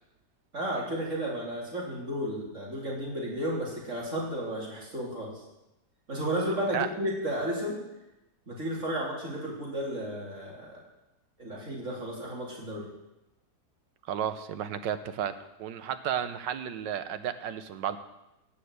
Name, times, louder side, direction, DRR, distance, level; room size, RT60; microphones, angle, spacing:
voice 1, 0.5-5.5 6.1-7.8 8.5-10.8 11.4-12.9, equal, 45° right, -3 dB, 4.1 m, -33 dB
voice 2, 14.1-15.3 15.6-18.0, right 9 dB, 90° right, 11 dB, 1.6 m, -32 dB
18.0 x 6.6 x 8.1 m, 0.95 s
omnidirectional pair, 1.9 m